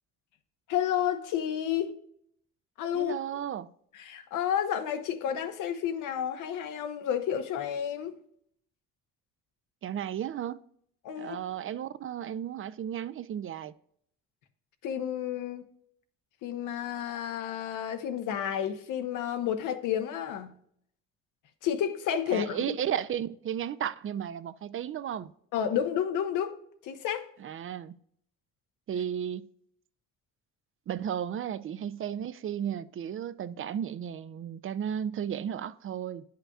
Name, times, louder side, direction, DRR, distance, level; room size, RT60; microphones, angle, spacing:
voice 1, 0.7-1.9 2.8-3.4 3.9-8.1 11.0-11.4 14.8-15.6 16.4-20.5 21.6-22.8 25.5-26.6 26.8-27.3, left 9 dB, 90° left, 0.9 m, -31 dB
voice 2, 2.9-3.7 9.8-10.6 11.2-13.7 22.3-25.3 27.4-27.9 28.9-29.5 30.9-36.2, right 9 dB, 45° right, 0.4 m, -34 dB
9.8 x 5.6 x 2.3 m
cardioid pair, 90°, 30 cm